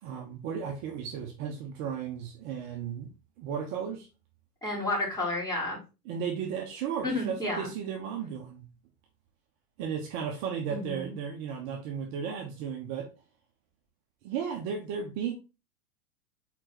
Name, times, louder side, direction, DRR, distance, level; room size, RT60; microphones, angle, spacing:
voice 1, 0.0-3.1 3.4-4.1 6.0-8.6 9.8-13.1 14.2-15.3, right 7 dB, 35° right, 1.3 m, -34 dB
voice 2, 4.6-5.8 7.0-7.7 10.7-11.1, left 2 dB, 10° left, 4.0 m, -31 dB
5.2 x 4.4 x 4.4 m
hypercardioid pair, 120°, 46 cm